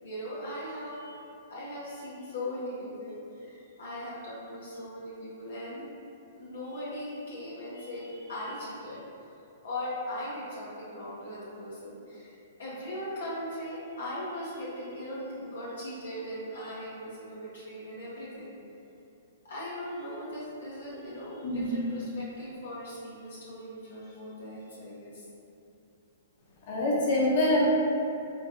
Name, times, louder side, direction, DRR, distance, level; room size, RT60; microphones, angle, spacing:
voice 1, 0.0-5.9 6.4-9.0 9.6-18.6 19.4-25.2, left 1 dB, 70° left, -8 dB, 1.1 m, -39 dB
voice 2, 21.4-21.8 26.7-27.7, left 1 dB, 50° left, -6 dB, 1.2 m, -25 dB
4.5 x 3.9 x 2.7 m, 2.8 s
figure-of-eight pair, 115°, 0 cm